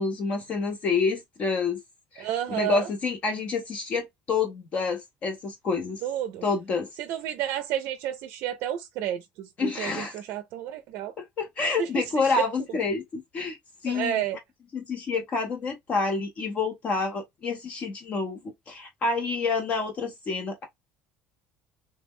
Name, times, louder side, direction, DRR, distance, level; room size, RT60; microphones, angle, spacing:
voice 1, 0.0-1.8 2.1-6.0 6.4-6.9 9.6-10.2 11.2-13.6 13.8-14.2 14.7-18.4 18.7-20.6, left 4 dB, 35° left, 0.6 m, -28 dB
voice 2, 2.2-2.9 6.0-6.4 7.0-11.1 11.6-12.3 13.9-14.4, right 11 dB, 60° right, 0.4 m, -31 dB
3.1 x 2.0 x 3.5 m
cardioid pair, 160°, 4 cm